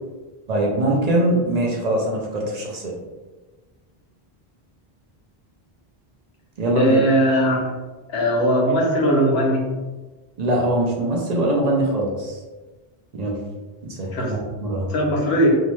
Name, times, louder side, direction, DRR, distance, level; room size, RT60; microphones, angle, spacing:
voice 1, 0.5-2.9 6.6-7.0 10.4-12.4 13.1-13.4 14.0-14.9, right 1 dB, 50° right, -1 dB, 0.5 m, -22 dB
voice 2, 6.8-7.6 8.1-9.6 14.1-14.3 14.9-15.6, equal, 85° left, -2 dB, 1.0 m, -19 dB
2.7 x 2.1 x 3.0 m, 1.2 s
omnidirectional pair, 1.0 m